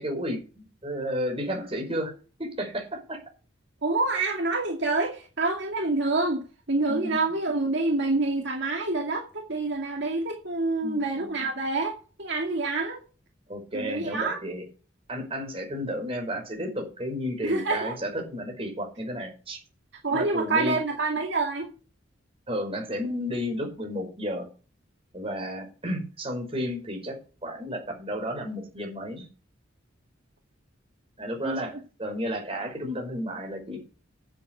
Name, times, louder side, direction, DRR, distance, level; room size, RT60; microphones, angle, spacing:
voice 1, 0.0-2.1 2.4-3.2 6.9-7.2 10.8-11.3 13.5-14.6 15.1-19.6 20.1-20.8 22.5-24.5 25.1-27.2 27.4-29.3 31.2-33.8, equal, 30° right, 2 dB, 5.3 m, -32 dB
voice 2, 3.8-6.4 6.7-13.0 13.7-14.4 17.4-17.9 20.0-21.7 31.4-31.7, right 3 dB, 60° right, 1 dB, 2.3 m, -27 dB
11.0 x 7.7 x 7.2 m, 0.35 s
head